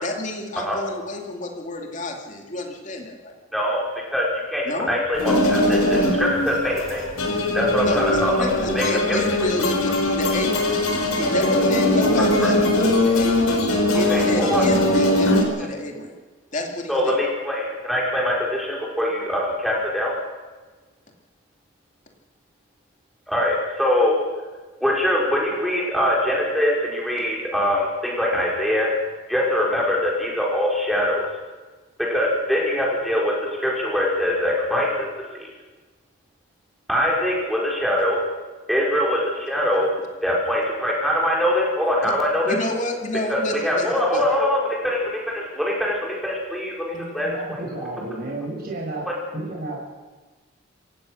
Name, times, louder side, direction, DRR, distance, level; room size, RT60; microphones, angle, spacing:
voice 1, 0.0-3.3 4.7-4.9 7.8-13.7 13.9-16.2 16.5-17.1 42.0-42.1 42.4-44.2 46.9-47.1, left 2 dB, 35° left, 2 dB, 2.6 m, -30 dB
voice 2, 3.5-3.8 4.1-4.6 4.9-7.0 7.5-8.4 8.7-9.2 14.1-14.6 16.9-20.1 23.3-24.2 24.8-28.9 29.3-31.3 32.0-33.3 33.6-35.1 35.3-35.5 36.9-38.2 38.7-39.9 40.2-42.6 43.3-47.6, left 1 dB, ahead, -3 dB, 5.0 m, -23 dB
sound 1, 5.1-15.4, left 1 dB, 80° left, 4.3 m, -21 dB
voice 3, 47.2-49.8, right 2 dB, 45° right, -2 dB, 6.3 m, -32 dB
26.5 x 16.0 x 6.6 m, 1.3 s
head